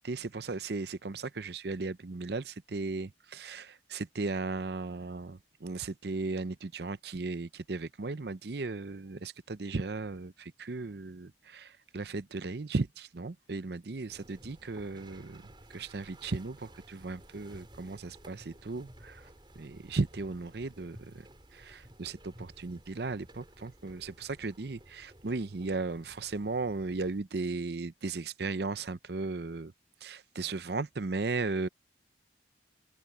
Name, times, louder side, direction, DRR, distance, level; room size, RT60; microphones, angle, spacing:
voice 1, 0.0-19.3 19.6-21.3 21.5-29.7 30.0-31.7, right 3 dB, 55° right, 0.7 m, -36 dB
sound 1, 14.1-27.2, right 1 dB, 25° right, 5.4 m, -55 dB
open air
head